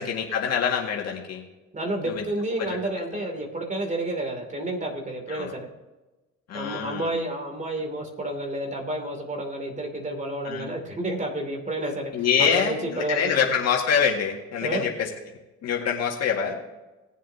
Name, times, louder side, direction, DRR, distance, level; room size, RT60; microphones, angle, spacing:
voice 1, 0.0-1.4 2.0-2.2 2.6-2.8 5.3-5.5 6.5-7.1 10.4-10.7 12.1-15.1 15.6-16.6, left 7 dB, 55° left, 0 dB, 2.0 m, -25 dB
voice 2, 1.7-5.7 6.5-13.6 14.6-14.9 16.3-16.4, right 1 dB, 25° right, 2 dB, 2.8 m, -30 dB
19.5 x 7.4 x 2.8 m, 1.1 s
cardioid pair, 95°, 31 cm